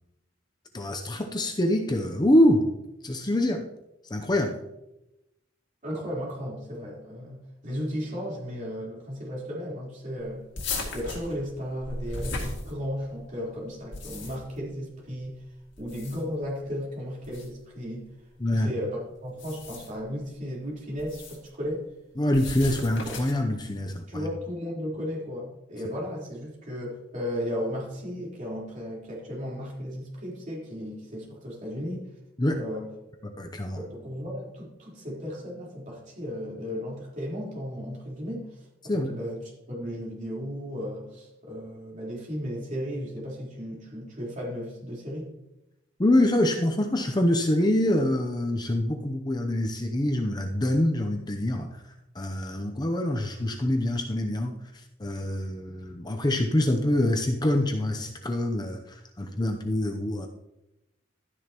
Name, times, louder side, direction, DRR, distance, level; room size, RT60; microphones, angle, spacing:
voice 1, 0.7-2.7 3.0-3.7 4.1-4.6 18.4-18.7 22.2-24.3 32.4-32.6 33.2-33.8 38.9-39.2 46.0-51.8 52.1-54.6 55.0-60.3, left 1 dB, 20° left, 4 dB, 0.7 m, -25 dB
voice 2, 5.8-10.4 10.9-15.4 15.8-18.1 18.5-21.9 24.1-32.1 32.6-32.9 33.8-38.7 38.9-45.3, equal, 40° right, -4 dB, 4.0 m, -35 dB
sound 1, 10.5-13.2 13.7-14.6 15.7-16.4 17.2-17.5 19.3-20.0 21.0-21.5 22.3-23.5, left 3 dB, 65° left, 2.3 m, -36 dB
12.5 x 9.9 x 3.0 m, 0.92 s
head